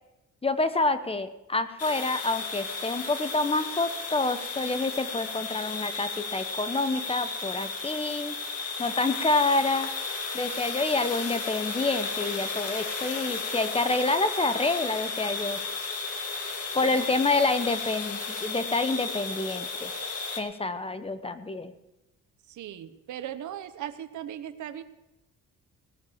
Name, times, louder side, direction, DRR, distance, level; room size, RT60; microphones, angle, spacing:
voice 1, 0.4-8.3 8.8-9.9 10.3-15.6 16.7-19.9 20.4-21.7, left 3 dB, 20° left, 11 dB, 1.0 m, -28 dB
sound 1, 1.8-20.4, left 4 dB, 55° left, 2.2 m, -34 dB
voice 2, 22.5-24.8, right 11 dB, 75° right, 11 dB, 1.0 m, -38 dB
18.5 x 6.8 x 6.9 m, 0.96 s
cardioid pair, 90°, 30 cm